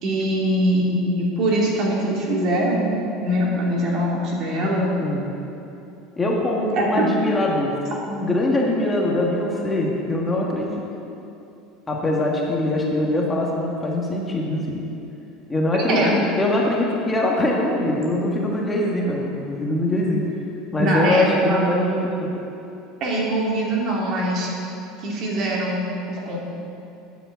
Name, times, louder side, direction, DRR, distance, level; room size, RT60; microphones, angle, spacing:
voice 1, 0.0-2.9 3.2-4.9 6.8-6.9 15.7-16.1 20.8-21.6 23.0-24.5 25.0-26.4, right 1 dB, 50° right, -3 dB, 2.8 m, -22 dB
voice 2, 6.2-7.7 8.1-10.7 11.9-14.8 15.5-20.2 20.7-22.3, left 1 dB, 15° left, -2 dB, 1.5 m, -22 dB
9.4 x 7.7 x 7.9 m, 2.8 s
supercardioid pair, 135°, 0 cm